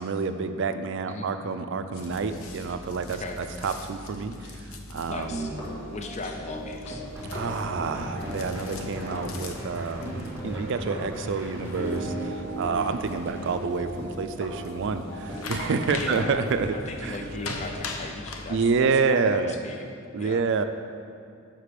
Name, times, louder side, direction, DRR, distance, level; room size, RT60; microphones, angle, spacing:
voice 1, 0.0-5.6 7.3-16.7 17.0-17.2 18.5-19.6 20.1-20.6, right 4 dB, 60° right, 9 dB, 0.4 m, -28 dB
sound 1, 1.9-18.5, left 2 dB, 80° left, 0.7 m, -42 dB
voice 2, 5.1-5.5 5.9-7.1 16.0-16.3 16.7-19.8 20.2-20.4, left 3 dB, 35° left, 4 dB, 0.4 m, -38 dB
sound 2, 5.2-17.7, right 1 dB, 55° left, 2.0 m, -38 dB
sound 3, 7.1-13.5, equal, 10° right, 1.3 m, -38 dB
5.9 x 4.9 x 6.7 m, 2.3 s
head